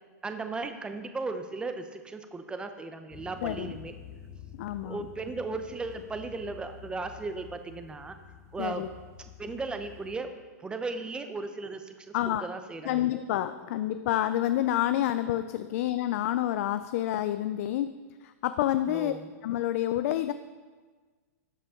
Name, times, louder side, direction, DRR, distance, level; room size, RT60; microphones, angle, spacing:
voice 1, 0.2-3.9 4.8-8.2 8.5-8.9 9.4-10.3 10.6-13.1 18.9-19.3, right 3 dB, 10° right, 8 dB, 0.7 m, -36 dB
sound 1, 3.1-10.2, left 8 dB, 30° left, 1.1 m, -49 dB
voice 2, 3.4-3.7 4.6-5.0 8.6-8.9 12.1-12.5 12.8-18.0 18.2-19.1 19.4-20.3, left 13 dB, 60° left, 12 dB, 0.4 m, -28 dB
12.0 x 5.4 x 3.7 m, 1.4 s
hypercardioid pair, 125°, 9 cm